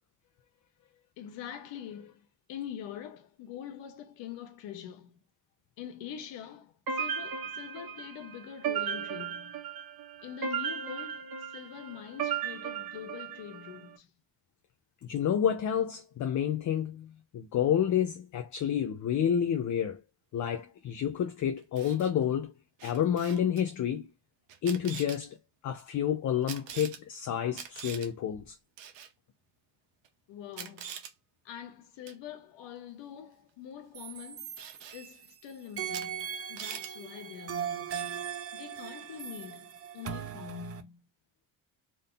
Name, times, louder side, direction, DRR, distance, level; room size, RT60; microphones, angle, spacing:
voice 1, 0.8-5.2 5.8-9.6 10.2-14.1 30.3-30.9 31.4-34.6 34.9-41.0, left 9 dB, 85° left, 1.1 m, -44 dB
sound 1, 6.9-13.8, right 7 dB, 55° right, 1.3 m, -36 dB
voice 2, 15.0-20.0 20.3-22.5 22.8-24.1 24.6-25.4 25.6-28.6, left 9 dB, 45° left, 0.6 m, -29 dB
Camera, 21.6-22.1 22.8-23.6 24.5-25.2 26.5-27.0 27.5-28.1 28.8-29.1 30.0-30.1 30.5-31.1 32.1-32.2 34.6-35.0 35.9-36.1 36.3-36.9 37.9-38.1, right 9 dB, 90° right, 1.0 m, -43 dB
sound 2, 33.9-35.3 35.8-40.8, right 9 dB, 35° right, 0.5 m, -39 dB
3.7 x 2.6 x 3.8 m
cardioid pair, 135°, 43 cm